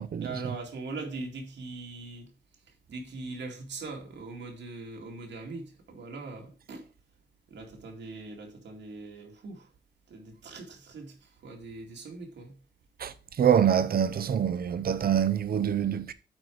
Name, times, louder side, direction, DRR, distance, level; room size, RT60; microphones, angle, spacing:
voice 1, 0.2-2.3 2.9-6.8 7.5-9.7 10.1-12.6, right 3 dB, 85° right, 2.3 m, -41 dB
voice 2, 13.0-16.1, right 8 dB, 55° right, 0.7 m, -25 dB
8.7 x 4.6 x 4.7 m
wide cardioid pair, 120°, 18 cm